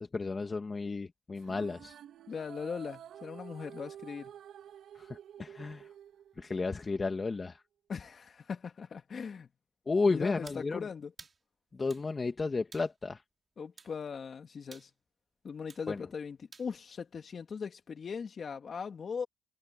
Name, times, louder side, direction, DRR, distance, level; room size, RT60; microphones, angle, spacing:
voice 1, 0.1-1.9 5.0-5.9 6.4-7.6 9.9-10.9 11.7-13.2 15.9-16.1, left 4 dB, 30° left, 2.1 m, -33 dB
sound 1, 1.4-6.8, right 9 dB, 70° right, 3.6 m, -50 dB
voice 2, 2.3-4.3 7.9-9.5 10.1-11.1 13.6-14.9 15.4-19.3, left 6 dB, 45° left, 2.8 m, -40 dB
sound 2, 10.5-10.7 11.2-11.4 11.9-12.1 12.7-12.9 13.8-14.0 14.7-14.9 15.7-15.9 16.5-16.7, right 4 dB, 35° right, 6.3 m, -52 dB
cardioid pair, 90°, 0 cm